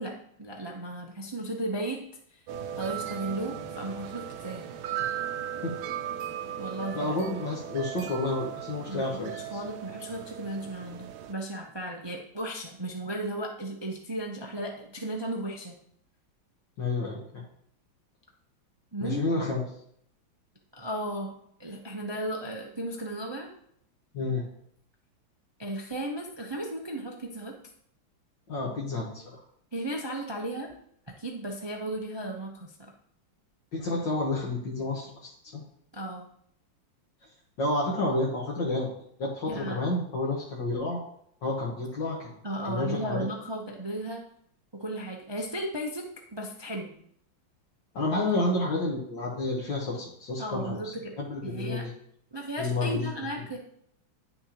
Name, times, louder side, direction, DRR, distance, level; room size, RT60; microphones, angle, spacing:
voice 1, 0.0-2.0 2.3-2.4 2.7-4.7 6.6-7.4 8.9-15.8 18.9-19.2 20.7-23.5 25.6-27.5 29.7-30.7 31.2-32.9 35.9-36.2 39.5-39.8 42.4-44.2 44.7-46.1 46.3-46.9 50.4-51.1 51.4-51.9 52.3-53.6, right 1 dB, 45° right, 1 dB, 0.3 m, -35 dB
sound 1, 2.5-11.3, right 10 dB, 80° right, 1.5 m, -37 dB
voice 2, 6.9-9.3 16.8-17.4 19.0-19.6 24.1-24.4 28.5-29.4 33.7-35.6 37.6-38.9 39.2-41.0 41.4-42.3 42.7-43.3 47.9-51.9 52.6-53.1, left 2 dB, 65° left, -3 dB, 2.1 m, -30 dB
10.0 x 6.6 x 2.9 m, 0.67 s
omnidirectional pair, 2.2 m